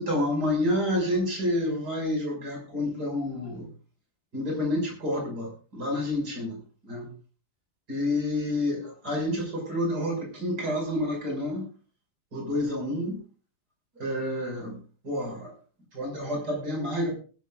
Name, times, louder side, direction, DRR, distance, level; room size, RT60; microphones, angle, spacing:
voice 1, 0.0-3.7 4.3-7.1 7.9-11.7 12.3-13.2 14.0-14.8 15.0-15.5 15.9-17.2, left 1 dB, 80° right, 1 dB, 6.5 m, -29 dB
20.0 x 13.0 x 2.5 m, 0.37 s
omnidirectional pair, 1.7 m